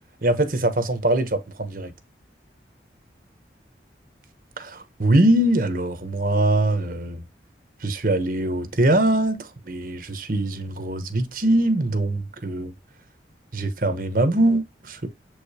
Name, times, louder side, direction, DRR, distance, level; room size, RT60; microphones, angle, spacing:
voice 1, 0.2-1.9 4.6-7.2 7.8-12.7 13.5-15.1, right 1 dB, 50° right, 1.1 m, -22 dB
7.6 x 5.0 x 2.8 m
head